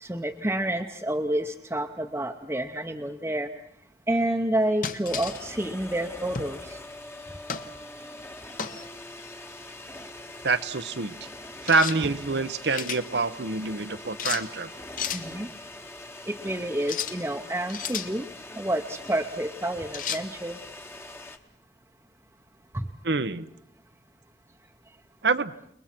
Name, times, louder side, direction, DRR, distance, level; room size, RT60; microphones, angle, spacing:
voice 1, 0.0-3.5 4.1-6.8 15.1-15.5 16.3-18.3 18.6-20.6 22.7-22.8, right 1 dB, 15° right, 1 dB, 0.8 m, -29 dB
sound 1, 4.8-5.4 6.3-6.6 7.5-7.7 8.6-8.9 11.7-12.0 12.5-13.0 14.2-14.5 15.0-15.3 16.8-17.2 17.7-18.1 19.9-20.3, left 7 dB, 50° left, 1.2 m, -33 dB
sound 2, 5.1-21.4, left 2 dB, 15° left, 1.2 m, -43 dB
voice 2, 10.4-11.1 11.6-14.7 23.0-23.4 25.2-25.5, right 3 dB, 75° right, 11 dB, 0.9 m, -26 dB
29.5 x 21.5 x 6.0 m, 0.72 s
head